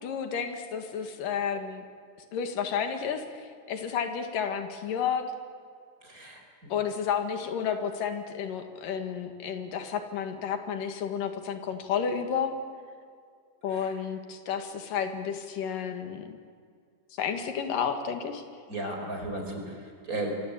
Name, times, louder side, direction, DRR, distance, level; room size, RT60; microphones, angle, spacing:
voice 1, 0.0-1.8 2.3-5.2 6.7-12.5 13.6-16.4 17.1-18.4, left 7 dB, 90° left, 6 dB, 3.5 m, -31 dB
voice 2, 6.0-6.7 13.7-13.9 18.7-20.4, right 1 dB, 25° right, 2 dB, 4.9 m, -35 dB
25.5 x 24.5 x 8.8 m, 2.2 s
omnidirectional pair, 3.8 m